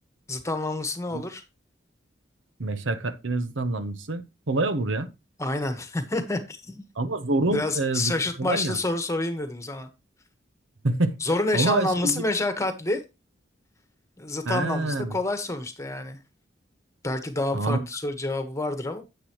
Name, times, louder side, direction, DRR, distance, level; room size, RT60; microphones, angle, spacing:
voice 1, 0.3-1.4 5.4-6.8 7.5-9.9 11.2-13.0 14.2-16.2 17.0-19.0, left 2 dB, 15° left, 1.4 m, -28 dB
voice 2, 2.6-5.1 7.0-8.1 8.4-8.8 10.8-11.2 11.5-12.2 14.4-15.2 17.5-17.8, right 2 dB, 85° right, 1.0 m, -26 dB
10.0 x 8.2 x 3.1 m
head